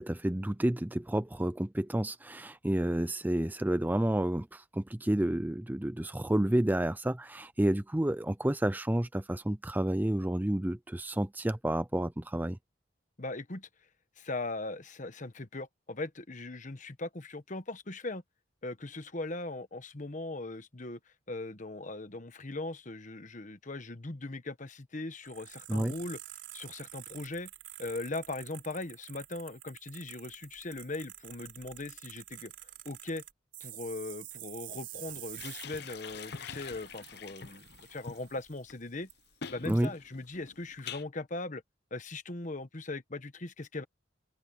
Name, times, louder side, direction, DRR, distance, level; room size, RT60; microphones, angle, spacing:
voice 1, 0.0-12.6 25.7-25.9 39.7-39.9, right 1 dB, 10° right, 0.5 m, -30 dB
voice 2, 13.2-13.7 14.2-18.2 18.6-21.0 21.3-26.2 26.5-27.5 27.8-33.2 33.6-39.1 39.5-41.6 41.9-43.8, left 2 dB, 40° left, 1.2 m, -39 dB
sound 1, 25.2-38.6 39.1-39.2 39.6-39.8, right 14 dB, 70° right, 4.3 m, -49 dB
sound 2, 35.1-41.0, left 6 dB, 60° left, 0.9 m, -45 dB
open air
head